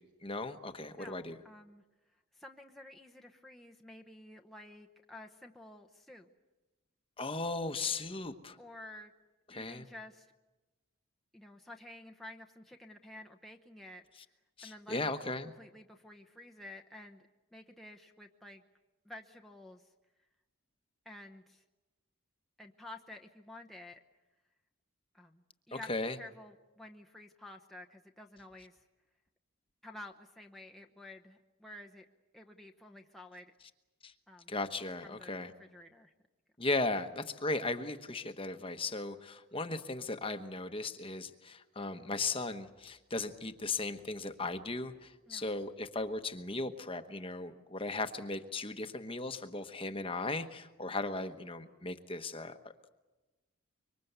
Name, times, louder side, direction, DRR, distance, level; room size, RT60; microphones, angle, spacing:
voice 1, 0.2-1.4 7.2-8.6 9.5-9.9 14.6-15.5 25.7-26.2 34.0-34.1 34.5-35.5 36.6-52.6, left 3 dB, 25° left, 8 dB, 1.1 m, -37 dB
voice 2, 0.9-1.8 2.3-6.3 8.6-9.1 9.5-10.3 11.3-14.0 14.6-17.2 17.5-18.6 19.0-19.9 21.0-21.6 22.6-24.0 25.1-28.8 29.8-32.0 32.3-33.5 34.3-34.5 35.0-36.1 45.3-45.5, left 1 dB, ahead, 1 dB, 0.9 m, -51 dB
25.5 x 24.0 x 8.1 m, 1.1 s
head